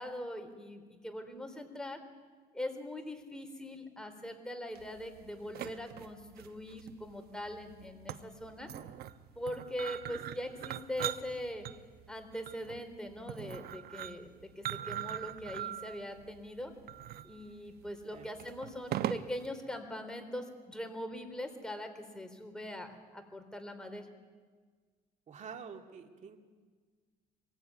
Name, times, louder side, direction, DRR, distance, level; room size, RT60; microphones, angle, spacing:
voice 1, 0.0-2.0 2.5-8.7 9.4-11.6 12.1-16.7 17.2-24.1, left 1 dB, 5° left, 5 dB, 3.8 m, -42 dB
sound 1, 4.7-19.5, right 12 dB, 70° right, 1.0 m, -42 dB
voice 2, 25.3-26.4, right 6 dB, 45° right, 4 dB, 2.5 m, -47 dB
24.5 x 22.0 x 9.6 m, 1.5 s
cardioid pair, 110°, 17 cm